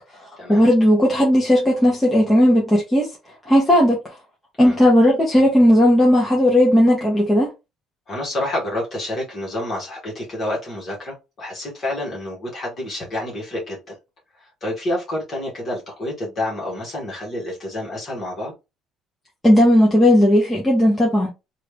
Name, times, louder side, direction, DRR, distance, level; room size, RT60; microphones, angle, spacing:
voice 1, 0.5-3.1 3.5-4.1 4.6-7.5 19.4-21.3, equal, 10° left, 0.9 m, -15 dB
voice 2, 8.1-14.0 14.3-18.5, left 1 dB, 35° left, 1.5 m, -28 dB
3.1 x 2.5 x 3.4 m
cardioid pair, 145°, 0 cm